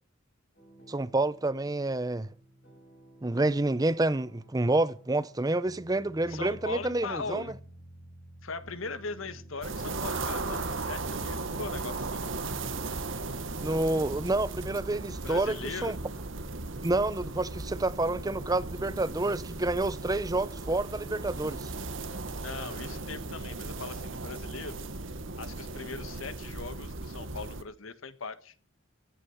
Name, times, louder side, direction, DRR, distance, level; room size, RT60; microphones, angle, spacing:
sound 1, 0.5-15.4, right 1 dB, 50° left, 7.5 m, -53 dB
voice 1, 0.9-2.3 3.2-7.5 13.6-16.0 16.8-21.7, right 2 dB, 20° right, 0.6 m, -28 dB
voice 2, 6.3-7.6 8.4-12.3 15.1-16.0 22.4-24.9 25.4-28.5, left 4 dB, 90° left, 1.3 m, -40 dB
sound 2, 9.6-27.6, right 3 dB, 70° right, 1.3 m, -37 dB
15.0 x 9.9 x 5.7 m
head